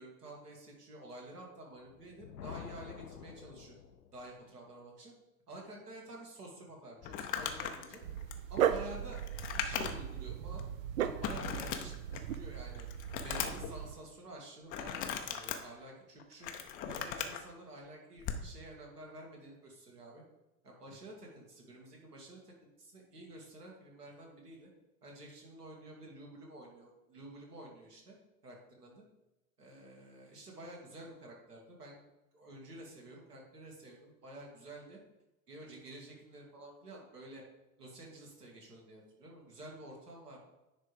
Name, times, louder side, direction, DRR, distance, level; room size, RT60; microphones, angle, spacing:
voice 1, 0.0-3.8 4.1-5.1 5.5-8.0 8.5-9.2 9.6-10.6 11.0-12.9 13.2-16.5 16.9-20.2 20.6-24.7 25.0-28.2 28.4-29.0 29.6-32.0 32.3-35.0 35.5-37.4 37.8-40.5, right 1 dB, 75° right, -1 dB, 2.4 m, -50 dB
Thunder, 1.8-4.4, left 8 dB, 80° left, 0.6 m, -49 dB
Crumpling crinkling, 7.0-10.2 10.6-10.7 11.2-12.4 12.7-13.7 14.7-15.6 16.2-17.4 18.2-18.5, left 8 dB, 20° left, 0.5 m, -38 dB
Dog, 8.0-13.9, right 9 dB, 60° right, 0.6 m, -37 dB
9.9 x 3.5 x 4.9 m, 1.0 s
figure-of-eight pair, 95°, 47 cm